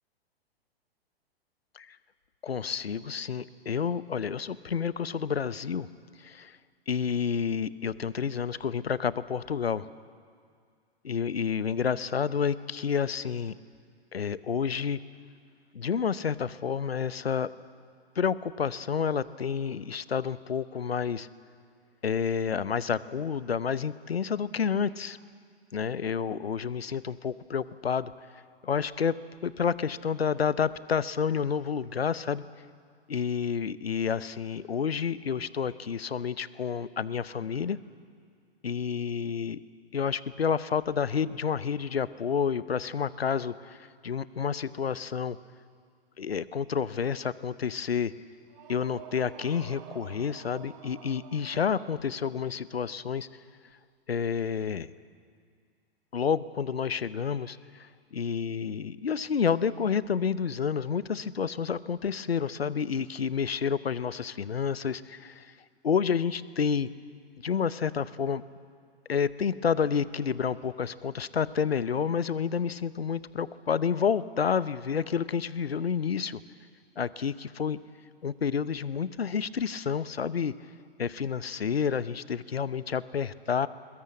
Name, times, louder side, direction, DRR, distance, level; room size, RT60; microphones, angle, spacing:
voice 1, 2.4-5.9 6.2-6.6 6.9-9.9 11.0-13.5 14.1-15.0 15.7-17.5 18.2-21.3 22.0-25.2 25.7-28.1 28.6-29.2 29.4-32.4 33.1-37.8 38.6-39.6 39.9-45.4 46.2-48.1 48.7-53.3 54.1-54.9 56.1-65.5 65.8-66.9 67.4-68.4 69.1-76.4 77.0-77.8 78.2-80.5 81.0-83.7, left 7 dB, 75° left, 17 dB, 0.8 m, -29 dB
sound 1, 48.5-52.5, right 11 dB, 35° right, 1.2 m, -49 dB
22.0 x 21.0 x 8.6 m, 2.1 s
figure-of-eight pair, 110°, 31 cm